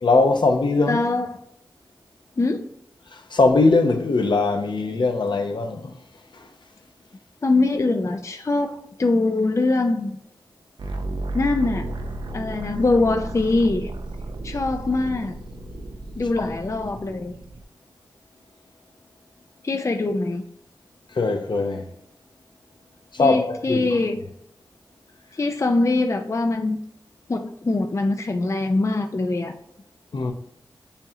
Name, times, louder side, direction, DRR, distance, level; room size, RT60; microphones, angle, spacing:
voice 1, 0.0-1.0 3.3-5.9 16.4-16.5 21.2-21.8 23.2-23.8 30.1-30.3, left 3 dB, 65° left, 0.7 m, -20 dB
voice 2, 0.9-1.4 2.4-2.6 7.4-10.2 11.3-11.9 12.3-13.9 14.4-15.4 16.2-17.3 19.6-20.4 23.2-24.2 25.3-26.8 27.3-29.6, left 2 dB, 35° left, 0.4 m, -23 dB
sound 1, 10.8-17.6, right 1 dB, 70° right, 0.5 m, -33 dB
6.9 x 2.8 x 2.7 m
cardioid pair, 45°, 8 cm